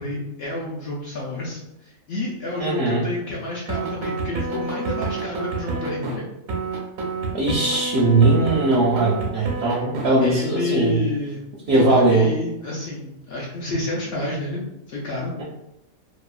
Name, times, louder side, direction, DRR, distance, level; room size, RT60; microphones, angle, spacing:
voice 1, 0.0-6.2 10.2-11.4 11.7-14.6 14.9-15.3, left 2 dB, 65° left, -4 dB, 0.6 m, -29 dB
voice 2, 2.6-3.1 7.3-11.0 11.7-12.3 15.4-15.5, right 2 dB, 65° right, -4 dB, 0.7 m, -19 dB
sound 1, 3.7-6.2 6.5-10.1, right 3 dB, 85° right, 1.0 m, -28 dB
2.7 x 2.2 x 2.3 m, 0.87 s
omnidirectional pair, 1.5 m